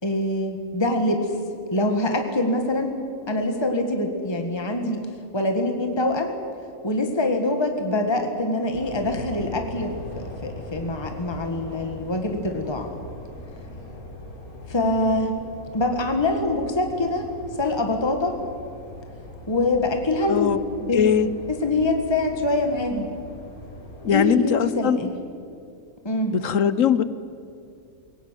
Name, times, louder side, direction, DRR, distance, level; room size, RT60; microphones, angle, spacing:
voice 1, 0.0-1.4 1.7-3.0 3.3-5.0 5.3-6.3 6.8-12.9 14.7-15.4 15.7-17.3 17.6-18.4 19.5-21.1 21.5-23.1 24.1-25.1 26.0-26.4, left 2 dB, 20° left, 4 dB, 1.8 m, -24 dB
sound 1, 8.7-24.2, left 1 dB, 80° left, 4.8 m, -40 dB
voice 2, 20.3-20.6 20.9-21.3 24.0-25.0 26.3-27.0, left 8 dB, 65° left, 14 dB, 1.1 m, -20 dB
22.0 x 17.5 x 9.2 m, 2.5 s
omnidirectional pair, 1.5 m